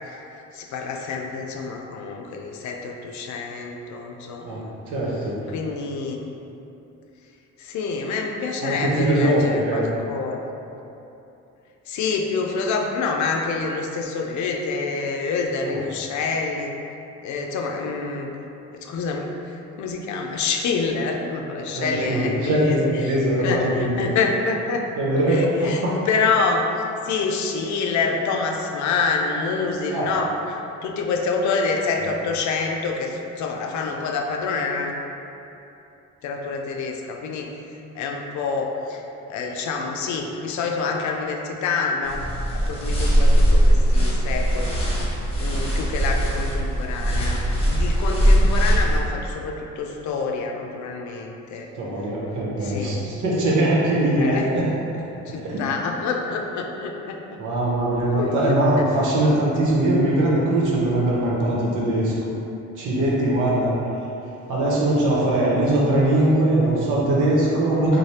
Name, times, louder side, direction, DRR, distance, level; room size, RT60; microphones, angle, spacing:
voice 1, 0.1-4.7 5.5-6.3 7.6-10.4 11.9-16.7 17.2-18.3 18.7-24.8 25.3-26.7 27.0-34.9 36.2-42.3 42.5-51.7 52.6-53.0 54.2-54.5 55.3-57.4 58.2-58.9, left 4 dB, 70° left, 2 dB, 0.5 m, -27 dB
voice 2, 4.4-5.4 8.6-9.8 15.6-15.8 21.7-24.0 25.0-25.9 29.9-30.1 51.8-54.7 55.2-55.6 57.4-62.1 62.8-63.7 64.5-68.0, right 1 dB, 80° right, -6 dB, 0.9 m, -21 dB
sound 1, 42.1-49.0, equal, 20° left, 0.9 m, -20 dB
3.2 x 2.2 x 4.1 m, 2.9 s
cardioid pair, 90°, 30 cm